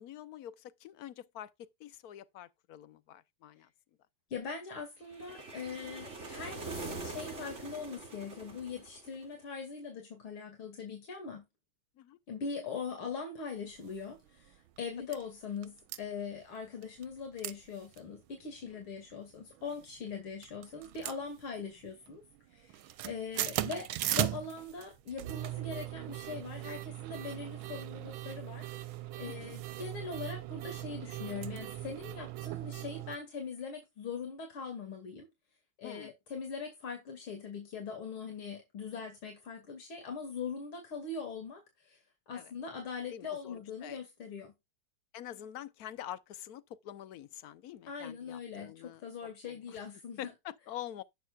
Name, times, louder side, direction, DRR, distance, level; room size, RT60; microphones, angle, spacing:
voice 1, 0.0-3.7 12.0-12.2 18.7-18.8 29.3-29.5 35.8-36.1 42.3-42.5 43.1-44.0 45.1-49.0 49.5-49.8 50.2-51.0, left 11 dB, 60° left, 1.1 m, -46 dB
voice 2, 4.3-11.4 12.3-22.2 22.5-23.9 24.2-35.3 35.8-42.0 42.3-44.5 47.9-50.3, left 5 dB, 85° left, 3.2 m, -41 dB
sound 1, 5.1-9.3, right 3 dB, 35° right, 3.0 m, -43 dB
sound 2, 13.8-14.0 14.5-14.6 14.8-15.2 15.6-16.0 16.8-17.1 17.4-17.6 17.9-18.0 18.5-18.8 19.5-20.1 20.4-21.8 22.1-22.4 22.6-33.2, right 14 dB, 80° right, 1.5 m, -38 dB
11.0 x 9.2 x 2.4 m
omnidirectional pair, 2.2 m